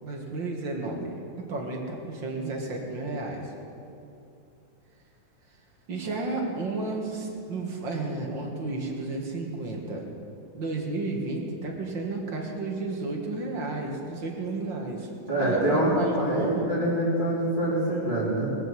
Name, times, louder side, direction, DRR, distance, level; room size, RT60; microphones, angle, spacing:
voice 1, 0.0-3.5 5.9-10.1 10.5-15.1 15.4-16.7, right 3 dB, 45° right, 0 dB, 2.0 m, -32 dB
voice 2, 15.3-18.5, right 1 dB, 15° right, -7 dB, 3.1 m, -25 dB
21.5 x 7.9 x 7.7 m, 2.7 s
omnidirectional pair, 3.6 m